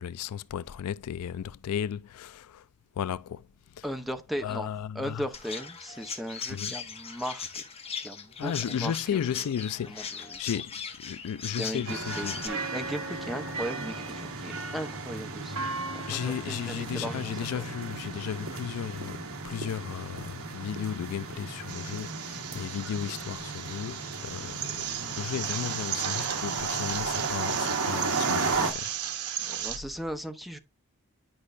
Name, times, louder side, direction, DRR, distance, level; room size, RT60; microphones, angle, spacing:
voice 1, 0.0-2.6 3.0-3.4 3.7-3.8 4.4-5.3 6.5-6.7 8.4-12.4 16.1-28.9, left 8 dB, 75° left, 0.3 m, -35 dB
voice 2, 3.8-7.6 8.0-9.4 9.9-10.6 11.6-17.6 29.5-30.6, equal, ahead, 0.8 m, -37 dB
Chirp tweet, 5.3-12.5, left 6 dB, 25° left, 1.0 m, -39 dB
sound 1, 11.9-28.7, right 3 dB, 65° right, 1.3 m, -34 dB
sound 2, 21.7-29.8, right 10 dB, 85° right, 1.0 m, -35 dB
10.0 x 5.4 x 2.5 m
head